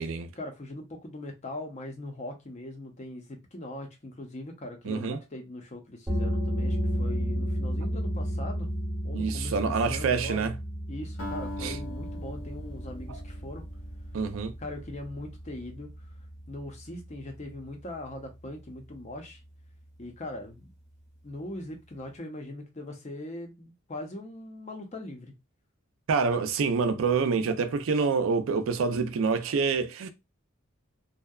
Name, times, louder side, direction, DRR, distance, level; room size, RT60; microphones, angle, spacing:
voice 1, 0.3-8.7 9.0-10.5 10.9-13.6 14.6-15.9 16.5-19.4 20.0-20.7 21.2-25.3, left 1 dB, 35° left, 0.6 m, -41 dB
voice 2, 4.9-5.2 9.1-10.5 11.6-11.8 13.1-13.2 14.1-14.5 26.1-30.1, right 5 dB, 70° right, 0.4 m, -27 dB
sound 1, 6.1-17.4, equal, 5° right, 0.8 m, -33 dB
Acoustic guitar, 11.2-15.6, left 1 dB, 85° left, 1.1 m, -41 dB
2.6 x 2.1 x 2.3 m
head